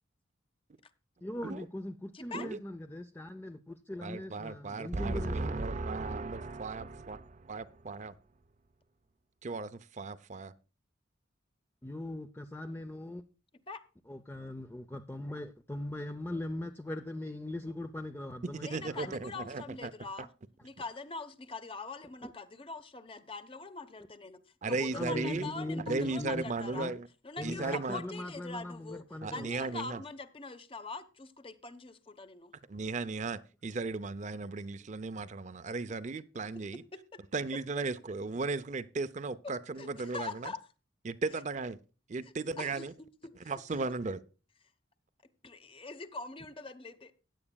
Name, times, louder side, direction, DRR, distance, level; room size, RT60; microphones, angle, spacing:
voice 1, 1.2-5.7 11.8-13.2 14.1-19.1 22.2-22.3 24.9-26.5 26.7-26.9 27.4-29.5, left 1 dB, 10° left, 0.5 m, -40 dB
voice 2, 2.1-2.5 13.7-13.8 18.6-20.3 20.6-26.9 27.2-32.5 37.1-37.2 39.4-39.5 39.8-40.6 41.3-41.4 42.2-43.1 43.4-43.5 45.4-47.1, left 3 dB, 25° left, 0.9 m, -43 dB
voice 3, 4.0-8.1 9.4-10.5 18.6-19.9 20.2-20.3 24.6-25.5 25.9-27.1 27.4-28.0 29.2-30.0 32.7-36.8 37.3-40.5 41.1-41.8 42.1-42.9 43.5-44.2, right 3 dB, 35° right, 0.5 m, -36 dB
16.0 x 9.8 x 2.2 m
head